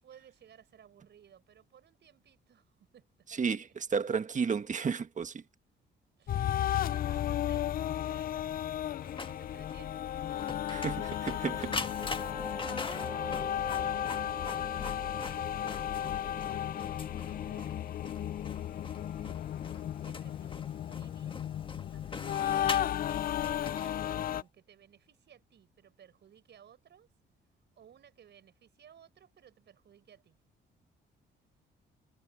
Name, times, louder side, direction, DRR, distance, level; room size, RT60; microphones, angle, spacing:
voice 1, 0.0-3.9 6.2-10.4 12.4-16.8 17.2-17.7 19.1-19.8 20.0-21.4 21.9-23.1 23.4-27.1 27.8-30.4, right 9 dB, 60° right, 5.3 m, -60 dB
voice 2, 3.4-5.4 10.7-11.8, right 6 dB, 40° right, 1.5 m, -32 dB
sound 1, 6.3-24.4, left 11 dB, 45° left, 0.4 m, -34 dB
Printer, 9.0-24.4, left 3 dB, 25° left, 1.6 m, -43 dB
sound 2, 10.8-20.3, right 1 dB, 5° right, 4.2 m, -46 dB
cardioid pair, 90°, 20 cm